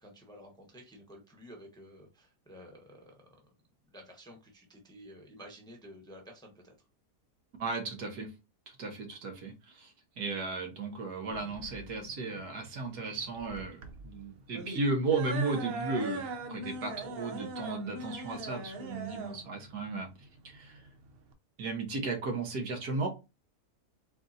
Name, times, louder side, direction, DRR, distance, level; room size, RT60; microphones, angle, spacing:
voice 1, 0.0-3.2 3.9-6.7, equal, 5° left, 1 dB, 0.9 m, -52 dB
voice 2, 7.6-8.3 8.7-20.1 20.4-20.8 21.6-23.1, right 3 dB, 75° right, 3 dB, 1.7 m, -35 dB
sound 1, 11.3-21.3, right 2 dB, 55° right, 0.6 m, -41 dB
4.5 x 3.8 x 2.7 m, 0.27 s
omnidirectional pair, 1.7 m